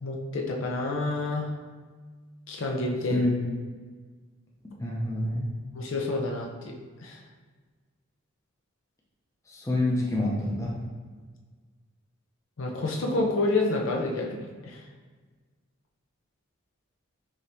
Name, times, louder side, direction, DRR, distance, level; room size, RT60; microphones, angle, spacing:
voice 1, 0.0-1.5 2.5-3.3 5.7-7.2 12.6-14.8, left 2 dB, 65° left, 0 dB, 0.5 m, -29 dB
voice 2, 4.8-5.5 9.5-10.8, left 1 dB, 15° left, -4 dB, 0.6 m, -27 dB
4.9 x 3.0 x 2.7 m, 1.5 s
head